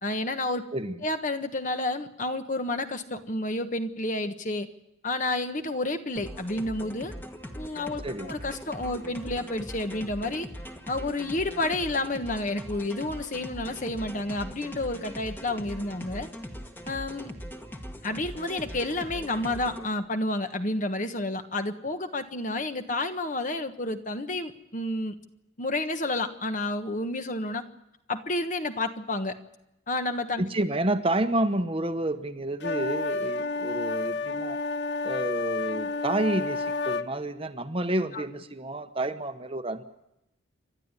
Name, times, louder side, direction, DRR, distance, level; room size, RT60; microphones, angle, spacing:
voice 1, 0.0-0.7 1.0-4.7 5.0-7.1 7.6-10.5 10.9-16.3 16.9-17.3 18.0-25.1 25.6-27.6 28.1-29.4 29.9-30.4 38.1-38.2, left 2 dB, 40° left, 8 dB, 1.3 m, -30 dB
sound 1, 6.2-19.9, equal, 10° left, 1.4 m, -41 dB
voice 2, 30.4-34.6 35.0-39.8, right 1 dB, 25° right, 8 dB, 1.0 m, -29 dB
sound 2, 32.6-37.1, left 3 dB, 55° left, 0.8 m, -30 dB
29.0 x 12.5 x 9.7 m, 0.86 s
head